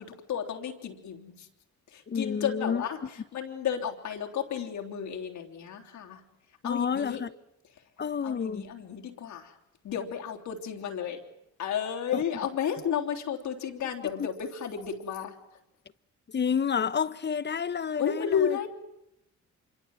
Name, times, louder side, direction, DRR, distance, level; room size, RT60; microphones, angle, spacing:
voice 1, 0.0-1.5 1.9-6.2 6.6-7.2 8.2-9.5 9.8-11.2 11.6-15.3 18.0-18.7, left 8 dB, 70° left, 3.3 m, -32 dB
voice 2, 2.1-2.8 6.6-7.3 8.0-8.7 12.1-12.2 14.2-14.3 16.3-18.6, left 6 dB, 35° left, 0.9 m, -29 dB
26.0 x 24.0 x 7.7 m
cardioid pair, 90°, 30 cm